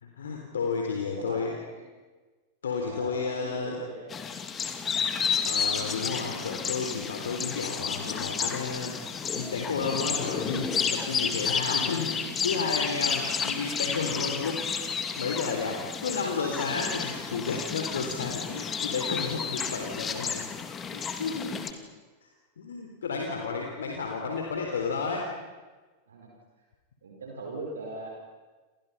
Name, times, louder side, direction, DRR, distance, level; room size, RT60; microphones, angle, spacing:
voice 1, 0.0-1.6 2.6-3.8 5.4-9.0 9.3-20.5 20.9-21.8 22.2-22.3 22.6-25.3, left 4 dB, 65° left, 1 dB, 3.6 m, -32 dB
voice 2, 1.2-1.7 2.7-4.2 23.8-23.9 26.1-26.3 27.0-28.1, right 2 dB, 65° right, 0 dB, 5.1 m, -40 dB
sound 1, 4.1-21.7, left 6 dB, 20° left, 2.6 m, -31 dB
30.0 x 28.5 x 5.7 m, 1.3 s
figure-of-eight pair, 90°, 0 cm